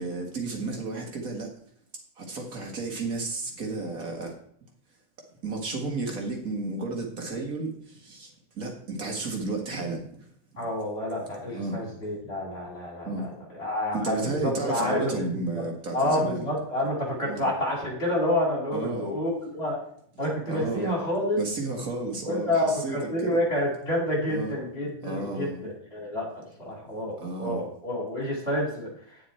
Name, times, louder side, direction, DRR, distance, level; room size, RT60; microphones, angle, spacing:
voice 1, 0.0-1.5 2.2-4.4 5.4-10.3 11.5-11.9 13.0-13.3 13.9-16.5 17.2-17.5 18.7-19.1 20.2-20.9 21.4-23.4 24.3-24.5 25.0-25.6 27.2-27.6, right 3 dB, 85° right, 1 dB, 2.4 m, -32 dB
voice 2, 10.6-15.6 15.9-19.8 20.2-21.4 22.3-29.2, left 1 dB, 45° left, -2 dB, 3.9 m, -29 dB
9.3 x 9.2 x 4.4 m, 0.63 s
omnidirectional pair, 1.4 m